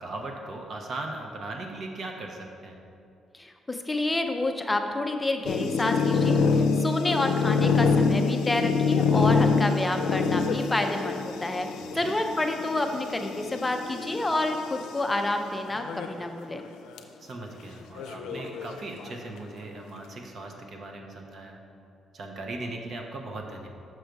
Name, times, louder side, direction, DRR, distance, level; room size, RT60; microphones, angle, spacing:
voice 1, 0.0-2.8 11.8-12.1 17.2-21.6 22.1-23.7, right 2 dB, 55° right, 2 dB, 0.9 m, -38 dB
voice 2, 3.3-11.7 11.9-16.6, left 2 dB, 15° left, 5 dB, 0.5 m, -29 dB
sound 1, 5.4-14.9 15.7-16.2 16.6-16.7 17.0-17.1 18.0-19.1, left 5 dB, 90° left, 0.5 m, -26 dB
6.2 x 5.2 x 4.6 m, 2.5 s
cardioid pair, 90°, 0 cm